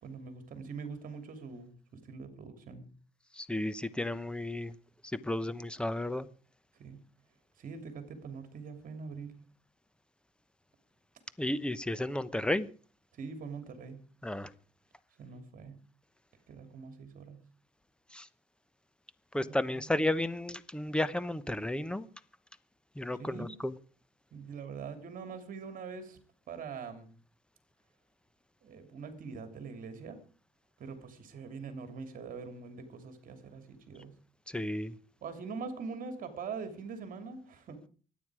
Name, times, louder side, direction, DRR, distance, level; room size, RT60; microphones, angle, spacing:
voice 1, 0.0-2.8 6.8-7.0 7.6-9.4 13.2-14.0 15.2-15.7 16.5-17.4 19.4-19.9 23.2-23.5 24.3-26.2 26.5-27.1 28.6-30.2 30.8-34.1 35.2-37.8, right 5 dB, 55° right, 8 dB, 3.0 m, -43 dB
voice 2, 3.3-4.7 5.2-6.3 11.4-12.7 14.2-14.5 18.1-18.3 19.3-22.1 23.0-23.7 34.5-34.9, left 1 dB, 5° left, 16 dB, 1.0 m, -33 dB
24.5 x 9.4 x 4.9 m, 0.40 s
cardioid pair, 110°, 17 cm